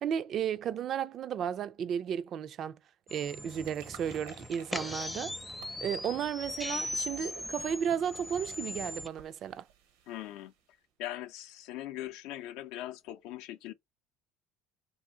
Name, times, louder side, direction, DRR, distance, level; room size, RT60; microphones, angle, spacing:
voice 1, 0.0-2.8 3.1-5.3 5.8-9.6, right 8 dB, 50° right, 0.3 m, -34 dB
sound 1, 3.1-9.1, left 1 dB, 10° left, 0.5 m, -39 dB
sound 2, 3.4-10.8, right 7 dB, 85° right, 0.8 m, -57 dB
voice 2, 10.1-10.5 11.0-13.7, left 14 dB, 70° left, 0.5 m, -40 dB
2.7 x 2.7 x 3.7 m
supercardioid pair, 85°, 0 cm